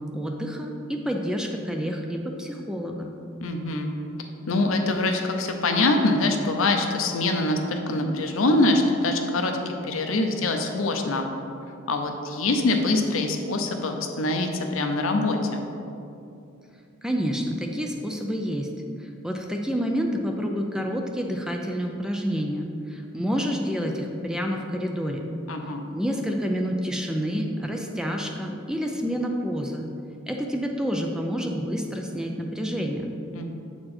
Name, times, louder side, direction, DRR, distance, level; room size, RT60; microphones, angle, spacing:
voice 1, 0.1-3.1 17.0-18.7 19.2-25.2 25.9-29.8 30.3-33.1, equal, 5° right, 2 dB, 0.4 m, -28 dB
voice 2, 3.4-3.9 4.5-11.3 11.9-15.6 25.5-25.8 33.3-33.5, left 2 dB, 75° left, 4 dB, 0.7 m, -24 dB
7.5 x 4.5 x 4.3 m, 2.6 s
head